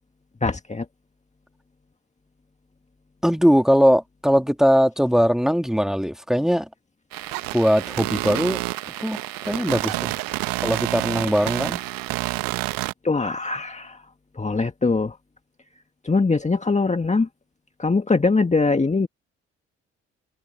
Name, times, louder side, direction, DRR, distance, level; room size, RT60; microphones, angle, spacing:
voice 1, 0.4-0.9 13.0-14.0 14.4-15.2 16.0-17.3 17.8-19.1, left 3 dB, 20° left, 1.8 m, -22 dB
voice 2, 3.2-6.7 7.5-8.6 9.0-9.2 9.4-10.1 10.6-11.8, equal, ahead, 3.2 m, -20 dB
sound 1, 7.1-12.9, right 22 dB, 70° right, 1.2 m, -28 dB
hypercardioid pair, 45°, 35 cm